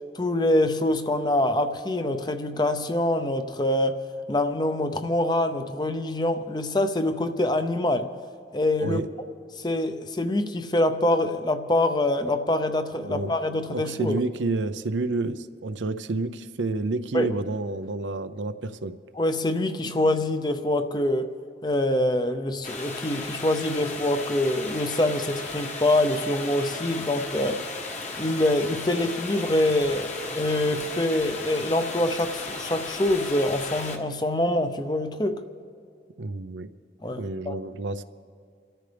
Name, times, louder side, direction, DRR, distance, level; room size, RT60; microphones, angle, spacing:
voice 1, 0.1-4.0 4.3-8.1 8.5-9.0 9.6-14.2 17.1-17.3 19.1-21.3 21.6-27.6 28.2-35.4 37.0-37.6, left 1 dB, 25° left, 9 dB, 0.7 m, -25 dB
voice 2, 13.0-13.3 13.7-18.9 36.2-36.7 37.2-38.0, right 2 dB, 90° right, 11 dB, 0.6 m, -29 dB
sound 1, 22.6-34.0, left 3 dB, 40° left, 1.3 m, -35 dB
29.0 x 13.5 x 3.4 m, 2.4 s
head